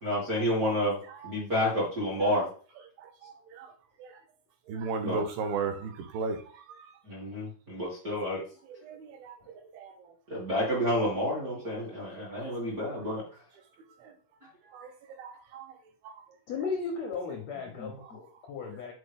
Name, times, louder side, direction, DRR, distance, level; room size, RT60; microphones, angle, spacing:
voice 1, 0.0-1.0 1.2-2.5 5.0-5.2 7.0-8.4 10.3-13.2 17.8-17.9, equal, 35° right, 1.5 m, -29 dB
voice 2, 3.0-3.7 4.0-4.1 4.7-6.9 8.8-9.4 9.7-9.9 14.0-14.1 14.7-14.9 15.2-15.7 16.0-16.1, right 4 dB, 80° right, 2.6 m, -36 dB
voice 3, 16.5-18.9, left 5 dB, 80° left, 1.5 m, -35 dB
7.4 x 4.2 x 3.4 m
omnidirectional pair, 4.3 m